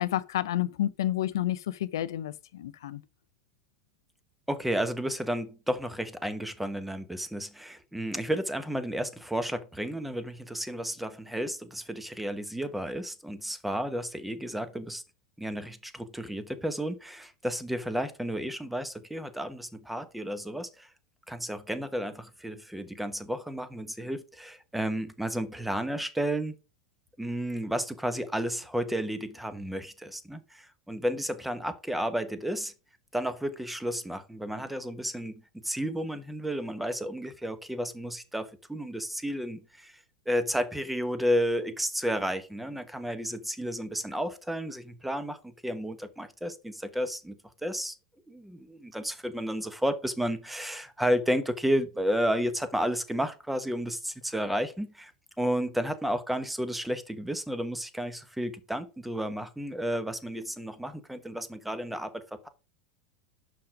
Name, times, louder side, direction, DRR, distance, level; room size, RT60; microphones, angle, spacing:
voice 1, 0.0-3.0, left 13 dB, 80° left, 0.6 m, -30 dB
voice 2, 4.5-15.0 15.4-20.9 21.3-26.5 27.2-32.7 33.1-47.9 48.3-55.1 55.4-62.5, equal, 5° right, 1.2 m, -32 dB
6.1 x 5.7 x 4.9 m
hypercardioid pair, 110°, 2 cm